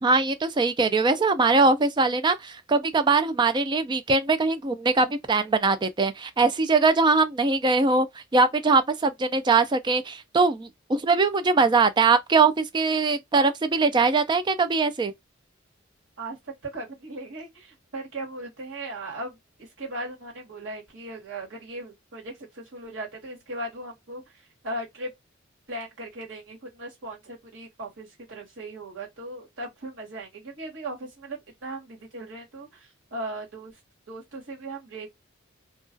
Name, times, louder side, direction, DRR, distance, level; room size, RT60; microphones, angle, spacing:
voice 1, 0.0-8.1 8.3-15.1, right 4 dB, 25° right, 0.3 m, -22 dB
voice 2, 16.6-24.2 24.6-25.1 25.7-33.7 34.1-35.1, right 1 dB, 70° right, 1.3 m, -38 dB
2.3 x 2.3 x 2.4 m
head